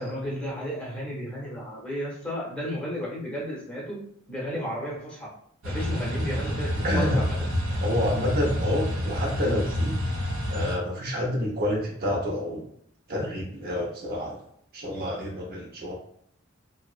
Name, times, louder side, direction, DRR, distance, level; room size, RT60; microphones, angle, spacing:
voice 1, 0.0-4.0 4.3-5.3 5.6-7.5, equal, 5° left, -5 dB, 0.8 m, -33 dB
sound 1, 5.6-10.8, left 1 dB, 85° right, 0.7 m, -28 dB
voice 2, 6.8-7.2 7.8-10.0 10.5-12.7 13.1-14.4 14.7-15.9, left 1 dB, 50° right, -1 dB, 0.6 m, -28 dB
2.8 x 2.0 x 2.4 m, 0.68 s
head